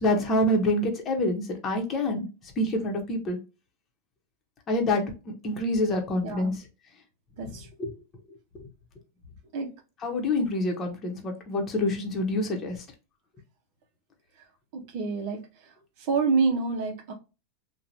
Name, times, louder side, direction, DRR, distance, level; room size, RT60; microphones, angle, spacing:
voice 1, 0.0-2.3 2.6-3.4 4.7-5.0 5.4-6.6 7.8-7.9 10.0-12.8, left 1 dB, 30° left, 0.9 m, -26 dB
voice 2, 6.2-6.6 7.4-7.7 9.5-9.7 14.9-15.4 16.1-17.1, right 4 dB, 60° right, 0.6 m, -27 dB
2.9 x 2.2 x 2.6 m
hypercardioid pair, 120°, 0 cm